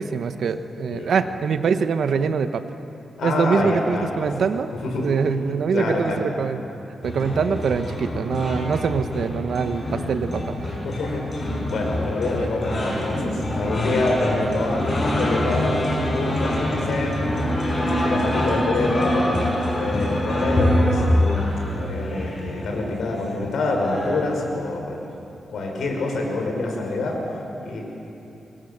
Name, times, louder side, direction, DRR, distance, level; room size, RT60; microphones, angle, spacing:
voice 1, 0.0-2.6 3.2-4.7 5.0-6.6 7.0-10.8, right 6 dB, 75° right, 9 dB, 1.1 m, -24 dB
voice 2, 3.2-4.3 4.8-5.1 5.7-6.2 10.8-15.8 16.1-17.2 17.6-19.4 19.7-21.2 21.7-25.1 25.5-27.8, left 2 dB, 85° left, 1 dB, 5.1 m, -26 dB
sound 1, 7.0-24.4, left 1 dB, 35° left, 6.0 m, -25 dB
25.5 x 22.5 x 6.7 m, 2.9 s
wide cardioid pair, 120°, 0 cm